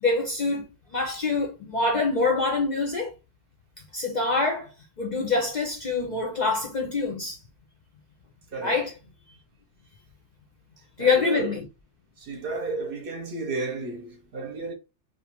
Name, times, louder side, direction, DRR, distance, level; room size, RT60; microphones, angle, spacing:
voice 1, 0.0-3.1 3.9-4.7 5.0-7.4 8.6-8.9 11.0-11.6, left 3 dB, 55° left, 0.5 m, -25 dB
voice 2, 8.5-8.9 10.8-11.6 12.2-14.7, right 3 dB, 55° right, 0.8 m, -33 dB
2.4 x 2.3 x 2.9 m
omnidirectional pair, 1.2 m